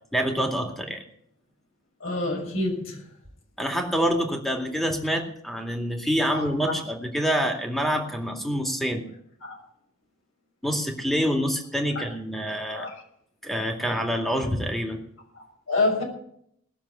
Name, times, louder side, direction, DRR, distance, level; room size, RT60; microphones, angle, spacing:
voice 1, 0.1-1.0 3.6-9.0 10.6-12.9 13.4-15.0, equal, ahead, 2 dB, 2.3 m, -26 dB
voice 2, 2.0-3.0 6.3-6.5 9.4-9.6 11.9-12.0 12.7-12.9 15.7-16.0, left 2 dB, 75° left, 0 dB, 6.4 m, -27 dB
19.0 x 7.3 x 8.4 m, 0.69 s
head